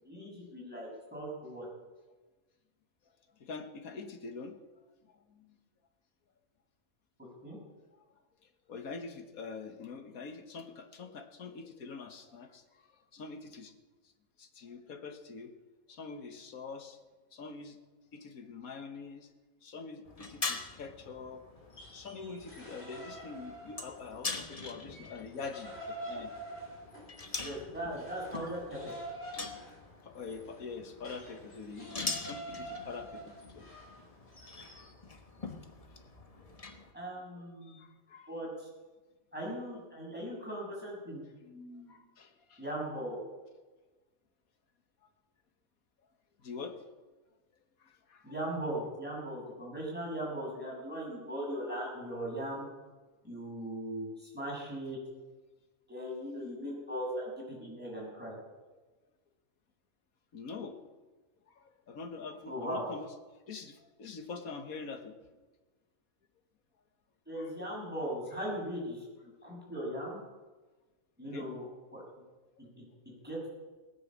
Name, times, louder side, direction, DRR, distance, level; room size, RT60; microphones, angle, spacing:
voice 1, 0.0-1.6 7.4-7.6 27.4-28.9 36.9-37.8 38.3-38.7 39.3-42.0 42.6-43.2 48.2-52.6 53.2-55.0 55.9-58.3 62.5-62.8 67.3-70.2 71.2-71.7 71.9-72.0 72.6-72.8 73.2-73.5, right 1 dB, 5° right, -4 dB, 6.7 m, -39 dB
voice 2, 3.4-4.6 5.0-5.6 8.4-13.7 14.4-15.5 15.9-17.0 17.3-17.8 18.1-19.3 19.6-21.4 21.9-26.3 29.9-33.7 34.4-34.5 37.7-38.3 41.9-42.6 46.4-46.8 47.8-48.3 60.3-60.8 61.5-63.1 63.5-65.2 67.4-67.5 71.2-71.5, left 4 dB, 75° left, 7 dB, 1.8 m, -45 dB
sound 1, 20.1-36.9, left 3 dB, 25° left, 1.1 m, -44 dB
sound 2, 21.6-24.3 24.7-34.9, right 1 dB, 45° left, 5.4 m, -47 dB
18.5 x 9.9 x 7.4 m, 1.2 s
omnidirectional pair, 1.5 m